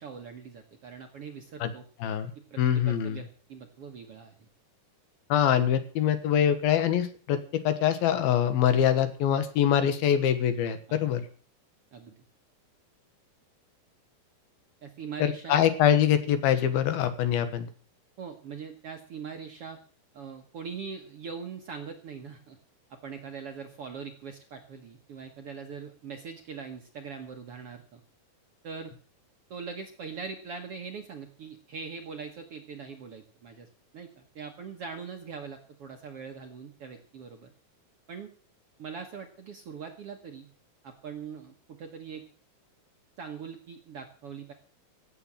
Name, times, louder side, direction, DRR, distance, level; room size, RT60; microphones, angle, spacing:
voice 1, 0.0-1.8 2.5-4.5 10.9-11.1 11.9-12.2 14.8-15.6 18.2-19.8 20.1-22.6 22.9-28.0 28.6-28.9 29.5-33.7 33.9-37.5 38.1-38.3 38.8-40.5 40.8-42.2 43.2-44.5, right 6 dB, 60° right, 4 dB, 1.6 m, -42 dB
voice 2, 2.0-2.3 2.6-3.2 5.3-7.4 7.6-11.2 15.2-17.7, left 9 dB, 80° left, 11 dB, 3.2 m, -24 dB
16.0 x 8.0 x 7.4 m, 0.44 s
omnidirectional pair, 4.3 m